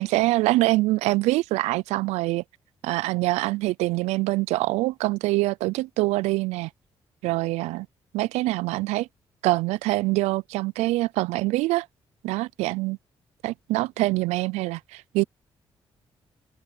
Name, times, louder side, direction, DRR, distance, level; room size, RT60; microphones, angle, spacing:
voice 1, 0.0-2.4 2.8-6.7 7.2-7.9 8.1-9.1 9.4-11.9 12.2-13.0 13.4-15.2, right 19 dB, 80° right, 0.4 m, -24 dB
open air
hypercardioid pair, 50°, 11 cm